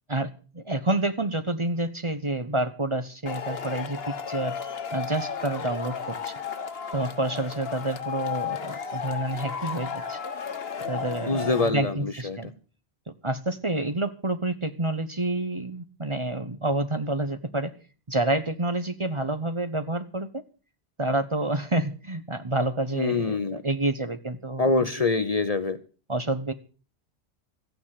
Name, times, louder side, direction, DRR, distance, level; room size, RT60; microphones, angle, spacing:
voice 1, 0.1-4.5 4.9-6.3 6.9-10.2 10.9-12.5 13.2-17.7 18.1-20.3 21.0-24.9 26.1-26.5, right 2 dB, 30° right, 9 dB, 1.0 m, -28 dB
Male speech man speaking / Shout / Clapping, 3.3-11.7, left 6 dB, 65° left, 1.4 m, -34 dB
voice 2, 11.3-12.4 22.9-23.6 24.6-25.8, left 3 dB, 40° left, 10 dB, 0.9 m, -25 dB
14.5 x 9.2 x 7.4 m, 0.38 s
omnidirectional pair, 1.1 m